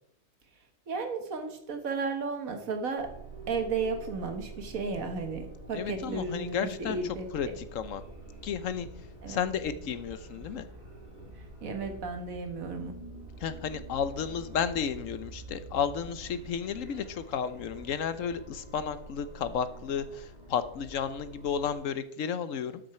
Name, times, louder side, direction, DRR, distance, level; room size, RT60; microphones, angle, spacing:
voice 1, 0.9-3.1 3.5-7.5 9.2-9.4 11.6-12.9, right 4 dB, 75° right, 6 dB, 1.8 m, -34 dB
sound 1, 3.0-21.7, right 2 dB, 30° right, 2.4 m, -46 dB
voice 2, 5.7-7.0 7.3-8.0 8.4-8.9 9.3-10.7 13.4-22.8, left 7 dB, 70° left, 12 dB, 1.1 m, -32 dB
12.5 x 6.5 x 4.3 m, 0.72 s
omnidirectional pair, 1.4 m